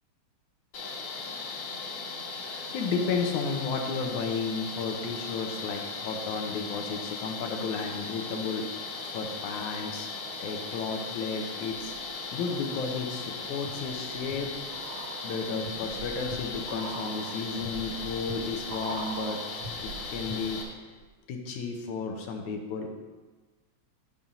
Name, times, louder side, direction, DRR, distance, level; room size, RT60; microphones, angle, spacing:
sound 1, 0.7-20.6, left 4 dB, 60° left, 2.4 m, -38 dB
voice 1, 2.4-8.7 9.1-10.1 10.4-11.9 12.3-14.5 15.2-19.4 19.8-20.8 21.3-22.9, left 4 dB, 85° left, 3 dB, 2.4 m, -33 dB
sound 2, 11.8-12.4 12.9-20.8 21.0-21.1, right 3 dB, 70° right, 1.3 m, -43 dB
8.9 x 6.1 x 5.5 m, 1.3 s
omnidirectional pair, 3.4 m